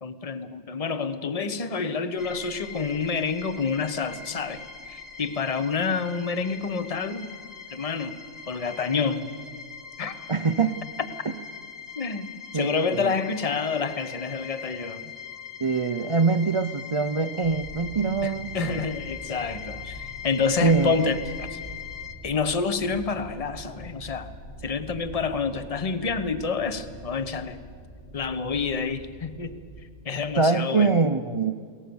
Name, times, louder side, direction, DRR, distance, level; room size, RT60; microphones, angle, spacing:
voice 1, 0.0-7.3 7.7-8.1 8.5-9.3 10.0-10.2 12.0-12.3 12.5-15.0 18.2-21.6 22.2-24.3 24.6-27.6 28.1-29.6 30.0-31.0, left 5 dB, 35° left, 11 dB, 1.0 m, -28 dB
sound 1, 2.2-22.1, left 7 dB, 15° left, 1.3 m, -41 dB
voice 2, 10.3-10.8 11.3-11.4 12.5-13.1 15.6-18.9 20.6-20.9 30.4-31.6, right 4 dB, 40° right, 10 dB, 0.4 m, -24 dB
sound 2, 17.4-29.8, right 1 dB, 55° left, 2.9 m, -44 dB
22.5 x 18.0 x 7.0 m, 2.2 s
omnidirectional pair, 1.2 m